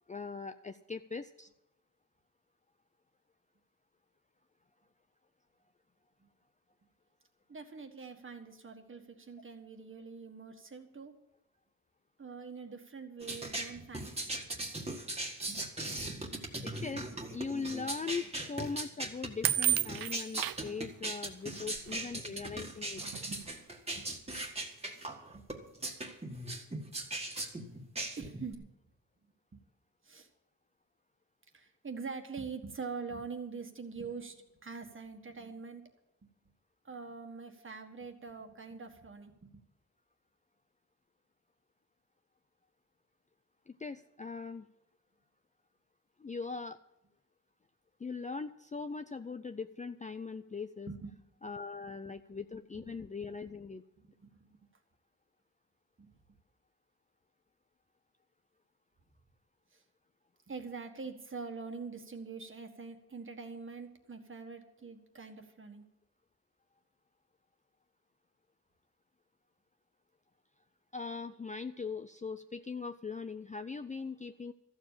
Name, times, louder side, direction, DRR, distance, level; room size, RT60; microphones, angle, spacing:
voice 1, 0.1-1.5 16.6-23.0 43.7-44.7 46.2-46.8 48.0-50.9 51.4-53.8 70.9-74.5, left 5 dB, 20° left, 8 dB, 0.4 m, -40 dB
voice 2, 7.5-11.1 12.2-14.7 15.4-16.3 21.5-21.8 22.0-22.5 23.0-23.4 23.9-24.4 25.3-25.4 28.2-28.7 29.5-29.7 30.0-30.3 31.5-35.8 36.2-36.3 36.8-39.6 50.9-51.1 51.8-51.9 52.8-52.9 54.0-54.5 56.0-56.1 59.7-59.8 60.5-65.8, right 5 dB, 35° right, 5 dB, 1.6 m, -45 dB
sound 1, 13.2-28.5, right 2 dB, 20° right, 1.7 m, -39 dB
sound 2, 19.4-20.7 21.8-21.9 22.6-22.7 23.0-23.4, right 10 dB, 85° right, 0.6 m, -30 dB
14.0 x 7.3 x 8.6 m, 0.90 s
wide cardioid pair, 135°, 34 cm